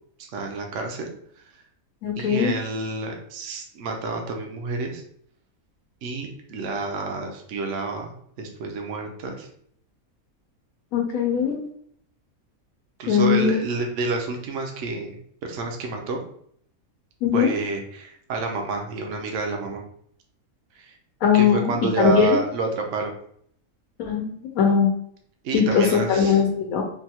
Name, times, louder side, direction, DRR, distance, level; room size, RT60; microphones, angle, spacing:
voice 1, 0.2-1.1 2.2-5.0 6.0-9.5 13.0-15.2 15.4-16.2 17.3-19.8 20.8-20.9 21.3-23.1 25.4-26.4, right 3 dB, 65° right, 2 dB, 0.9 m, -29 dB
voice 2, 2.0-2.6 10.9-11.6 13.1-13.6 17.2-17.5 21.2-22.4 24.0-24.9 25.5-26.8, left 6 dB, 80° left, 0 dB, 1.0 m, -20 dB
3.4 x 2.2 x 2.8 m, 0.65 s
omnidirectional pair, 1.5 m